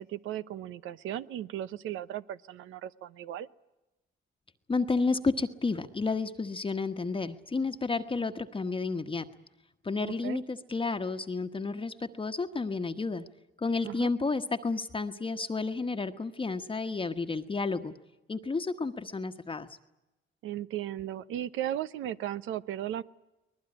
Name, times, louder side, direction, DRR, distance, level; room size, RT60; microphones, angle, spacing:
voice 1, 0.0-3.5 10.0-10.4 13.8-14.1 20.4-23.0, right 12 dB, 85° right, 14 dB, 0.9 m, -36 dB
voice 2, 4.7-9.3 9.8-13.2 13.6-17.9 18.3-19.7, left 4 dB, 25° left, 7 dB, 1.2 m, -31 dB
22.5 x 20.0 x 9.8 m, 0.97 s
cardioid pair, 90°, 20 cm